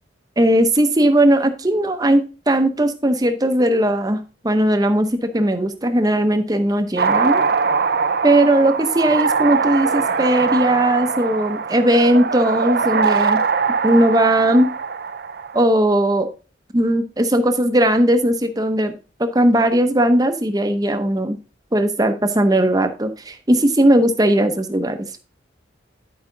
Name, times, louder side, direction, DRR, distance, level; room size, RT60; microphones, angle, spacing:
voice 1, 0.4-7.4 8.2-13.4 13.8-14.7 15.5-16.3 16.7-18.9 19.2-21.4 21.7-25.1, right 1 dB, 20° right, 7 dB, 0.7 m, -18 dB
sound 1, 7.0-15.6, right 5 dB, 50° right, 0.5 m, -21 dB
10.5 x 5.0 x 3.8 m, 0.35 s
head